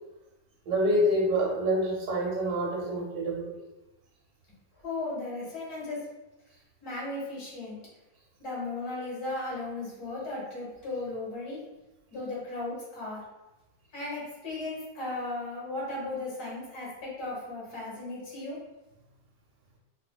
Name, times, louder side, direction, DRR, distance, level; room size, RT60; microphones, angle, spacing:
voice 1, 0.6-3.5, equal, 80° right, -2 dB, 1.5 m, -27 dB
voice 2, 4.8-6.0 6.8-7.8 8.4-11.6 12.1-13.2 13.9-18.6, left 2 dB, 85° left, -5 dB, 2.0 m, -36 dB
4.1 x 2.7 x 2.2 m, 1.0 s
omnidirectional pair, 1.6 m